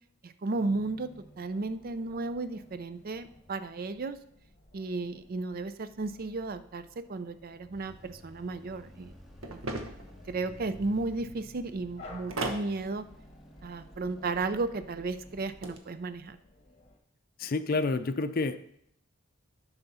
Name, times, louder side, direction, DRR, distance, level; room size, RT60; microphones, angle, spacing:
voice 1, 0.2-1.1 1.4-4.2 4.7-9.2 9.5-9.6 10.3-13.1 13.6-16.4, right 3 dB, 45° right, 12 dB, 0.5 m, -34 dB
sound 1, 0.5-17.0, left 2 dB, 30° left, 1.3 m, -55 dB
sound 2, 7.7-15.8, equal, ahead, 1.0 m, -53 dB
sound 3, 9.4-10.1 12.3-12.7 15.3-15.8, right 2 dB, 85° right, 1.0 m, -35 dB
voice 2, 17.4-18.7, left 3 dB, 45° left, 11 dB, 0.5 m, -29 dB
10.5 x 5.7 x 4.1 m, 0.71 s
head